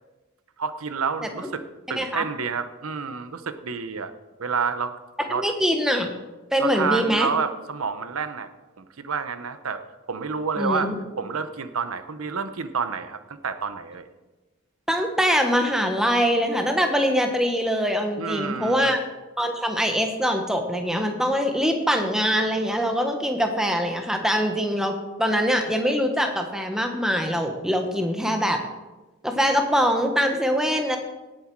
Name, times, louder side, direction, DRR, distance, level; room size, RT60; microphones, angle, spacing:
voice 1, 0.6-1.6 1.9-4.1 4.4-4.9 5.3-5.4 6.6-8.5 8.8-9.8 10.1-10.9 11.2-14.1 18.2-18.9, right 5 dB, 90° right, 10 dB, 0.9 m, -29 dB
voice 2, 5.3-6.1 6.5-7.3 10.6-10.9 14.9-19.0 19.4-28.6 29.2-31.0, equal, 5° right, 4 dB, 1.1 m, -23 dB
17.5 x 7.8 x 4.7 m, 1.2 s
head